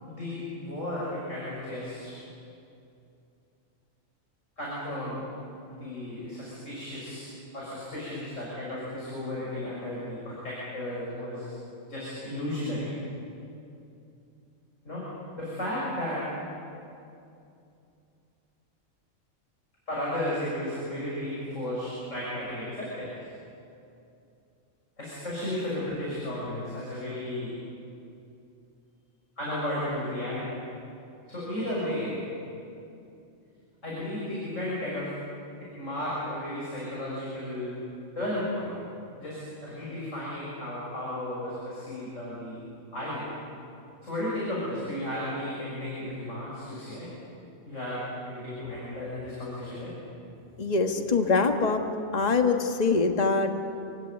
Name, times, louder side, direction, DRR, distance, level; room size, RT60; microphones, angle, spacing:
voice 1, 0.0-2.2 4.6-5.2 5.7-11.5 11.9-12.9 14.8-15.0 15.4-16.2 19.9-23.1 25.0-27.5 29.4-30.5 31.3-32.2 33.8-35.1 35.6-37.8 38.2-38.7 39.2-42.6 42.9-43.3 44.0-47.1 47.6-49.9, left 1 dB, 65° left, -7 dB, 7.1 m, -34 dB
voice 2, 50.6-51.8 52.1-53.5, left 4 dB, 30° left, 5 dB, 1.5 m, -24 dB
27.5 x 16.5 x 9.7 m, 2.6 s
omnidirectional pair, 1.4 m